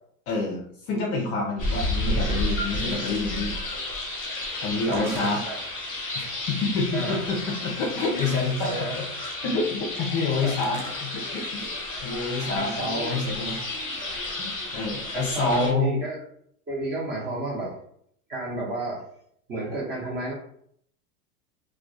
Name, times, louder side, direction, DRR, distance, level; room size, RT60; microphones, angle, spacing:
voice 1, 0.3-3.5 4.6-5.4 6.1-9.1 9.4-11.7 12.0-13.6 14.4-16.0, left 3 dB, 35° left, -1 dB, 0.4 m, -28 dB
sound 1, 1.6-15.7, left 1 dB, 20° left, 1.0 m, -32 dB
sound 2, 2.8-3.4 3.7-6.2 7.2-8.9 9.2-9.4 9.9-11.7 12.1-12.2 12.4-12.5, right 3 dB, 80° right, 0.7 m, -47 dB
voice 2, 4.9-5.6 6.9-7.2 8.1-8.9 10.4-10.5 12.6-13.4 15.1-16.2 16.7-17.8 18.3-19.0 19.5-20.3, right 2 dB, 25° right, -3 dB, 0.7 m, -32 dB
2.2 x 2.2 x 2.6 m, 0.67 s
hypercardioid pair, 105°, 44 cm